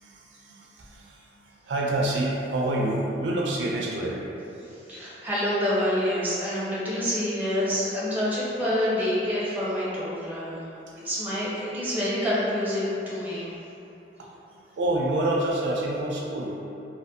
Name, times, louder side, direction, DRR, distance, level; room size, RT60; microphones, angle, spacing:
voice 1, 0.0-4.4 4.7-4.8 10.8-11.1 14.2-16.6, right 1 dB, 75° right, -3 dB, 0.4 m, -28 dB
voice 2, 4.9-10.6 11.0-13.5, equal, 10° right, -9 dB, 0.5 m, -27 dB
2.5 x 2.4 x 2.6 m, 2.8 s
head